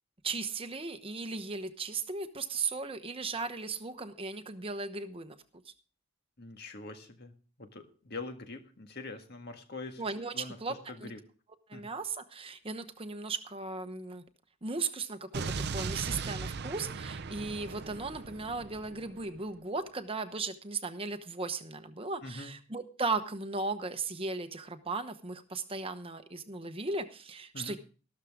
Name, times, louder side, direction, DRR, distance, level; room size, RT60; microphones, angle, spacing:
voice 1, 0.2-5.4 5.7-5.8 10.0-11.1 11.7-14.2 14.6-27.8, right 3 dB, 25° right, 9 dB, 1.0 m, -36 dB
voice 2, 6.4-7.3 7.6-10.0 10.3-10.6 10.9-11.2 11.7-11.9 22.2-22.5 27.5-27.8, left 3 dB, 45° left, 6 dB, 1.7 m, -43 dB
Explosion, 15.3-19.4, right 4 dB, 50° right, 0.6 m, -38 dB
13.5 x 13.0 x 3.6 m, 0.38 s
head